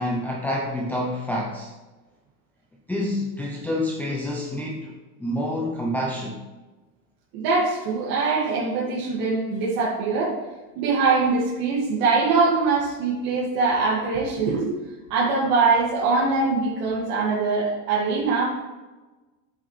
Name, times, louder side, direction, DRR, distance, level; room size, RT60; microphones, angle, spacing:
voice 1, 0.0-1.7 2.9-4.9 5.2-6.4, left 1 dB, 5° left, -4 dB, 0.7 m, -27 dB
voice 2, 7.3-10.4 10.8-14.8 15.1-18.4, right 4 dB, 45° right, -7 dB, 2.3 m, -22 dB
10.0 x 7.7 x 3.3 m, 1.2 s
supercardioid pair, 135°, 45 cm